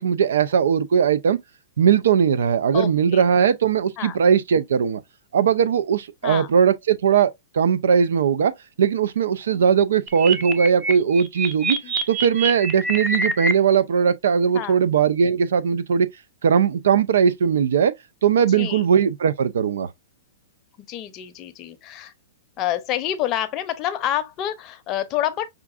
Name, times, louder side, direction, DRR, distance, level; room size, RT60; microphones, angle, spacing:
voice 1, 0.0-1.4 1.8-5.0 5.3-8.5 8.8-11.8 12.1-16.1 16.4-17.9 18.2-19.9, right 7 dB, 80° right, 0.4 m, -19 dB
voice 2, 2.7-3.2 4.0-4.2 6.2-6.5 9.5-9.7 11.8-11.9 14.5-14.8 18.5-18.8 20.9-22.1 22.6-25.5, left 11 dB, 35° left, 0.6 m, -28 dB
sound 1, 10.1-13.5, right 2 dB, 10° right, 0.6 m, -25 dB
5.6 x 2.5 x 2.5 m
hypercardioid pair, 135°, 0 cm